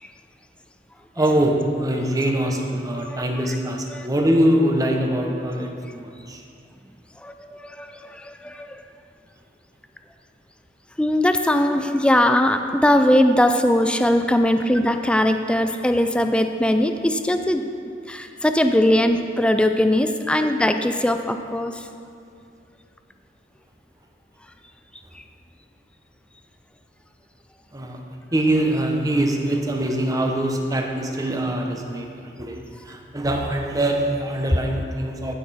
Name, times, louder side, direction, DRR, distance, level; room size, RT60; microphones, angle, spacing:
voice 1, 1.2-6.4 27.7-28.0 28.3-32.6 32.8-35.3, right 1 dB, 20° right, 2 dB, 0.9 m, -23 dB
voice 2, 7.2-8.8 11.0-17.6 18.1-21.8, left 1 dB, 5° left, 6 dB, 0.4 m, -20 dB
15.0 x 5.9 x 4.2 m, 2.4 s
head